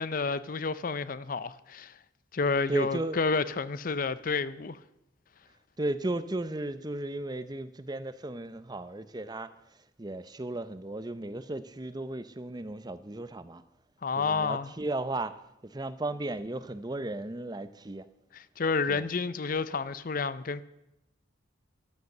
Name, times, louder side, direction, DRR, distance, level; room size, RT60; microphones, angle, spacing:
voice 1, 0.0-1.9 2.3-4.8 14.0-14.7 18.3-20.6, left 4 dB, 45° left, 0.5 m, -30 dB
voice 2, 2.7-3.2 5.8-9.5 10.0-13.6 14.1-15.4 15.6-18.1 18.9-19.1, right 2 dB, 20° right, 0.6 m, -35 dB
13.0 x 12.0 x 6.6 m
head